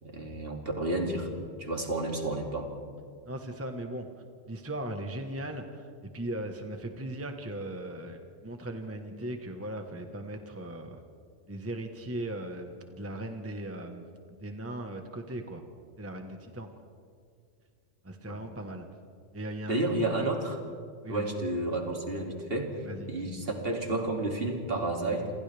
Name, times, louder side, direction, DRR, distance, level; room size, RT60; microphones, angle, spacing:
voice 1, 0.0-1.3 1.6-2.7 18.3-18.4 19.7-20.6 21.1-25.3, right 2 dB, 50° right, 1 dB, 2.8 m, -31 dB
voice 2, 3.3-4.1 4.5-11.0 11.5-15.6 16.0-16.7 18.0-18.9 19.3-19.9 20.2-20.3 21.0-21.3 22.8-23.1, right 1 dB, 10° right, 4 dB, 1.2 m, -38 dB
28.0 x 26.5 x 3.5 m, 2.3 s
omnidirectional pair, 1.3 m